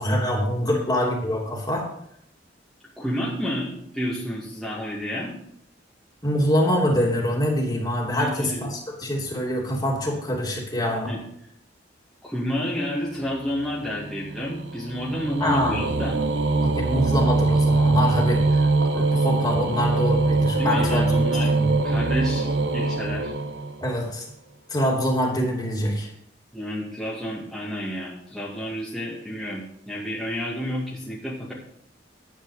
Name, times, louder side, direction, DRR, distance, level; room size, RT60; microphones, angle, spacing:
voice 1, 0.0-1.9 6.2-11.1 15.4-15.8 16.6-21.7 23.8-24.2 24.7-26.1, equal, 20° left, -2 dB, 3.1 m, -25 dB
voice 2, 0.6-1.1 3.0-5.3 8.2-8.7 11.1-11.2 12.2-16.2 20.6-21.5 21.8-23.3 26.5-31.5, equal, ahead, -7 dB, 2.3 m, -30 dB
sound 1, 13.2-24.1, right 3 dB, 70° right, 1.0 m, -23 dB
11.5 x 8.8 x 5.0 m, 0.71 s
head